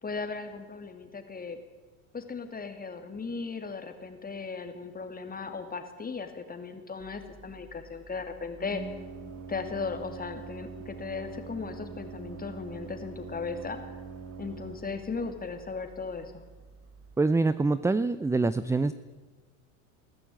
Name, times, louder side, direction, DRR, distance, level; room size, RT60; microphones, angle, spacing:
voice 1, 0.0-1.6 2.1-8.8 9.5-13.8 14.4-16.3, left 4 dB, 20° left, 7 dB, 3.0 m, -37 dB
Organ, 7.0-17.1, right 4 dB, 30° right, 3.1 m, -44 dB
voice 2, 17.2-18.9, right 3 dB, 5° right, 15 dB, 0.6 m, -25 dB
21.0 x 14.0 x 9.0 m, 1.4 s
hypercardioid pair, 90°, 42 cm